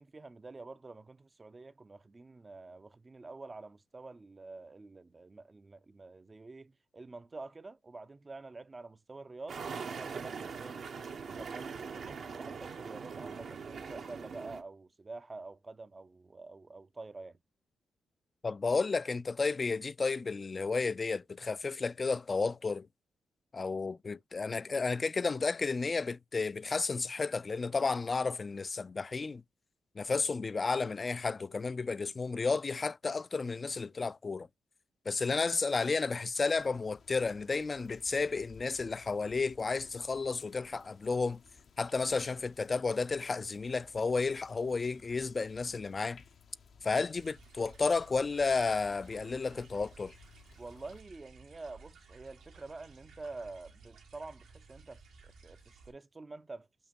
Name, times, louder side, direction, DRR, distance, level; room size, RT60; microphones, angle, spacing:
voice 1, 0.0-9.6 10.0-10.9 11.4-17.4 50.6-55.6 55.9-56.7, right 3 dB, 35° right, 0.5 m, -48 dB
sound 1, 9.5-14.6, right 5 dB, 70° right, 0.9 m, -41 dB
voice 2, 18.4-22.9 23.5-29.4 30.0-34.5 35.1-41.4 41.8-46.2 46.8-50.1, left 4 dB, 40° left, 0.4 m, -32 dB
sound 2, 36.5-51.0, left 5 dB, 70° left, 0.7 m, -59 dB
sound 3, 47.1-55.9, right 4 dB, 85° right, 1.5 m, -57 dB
7.1 x 2.8 x 5.2 m
supercardioid pair, 50°, 0 cm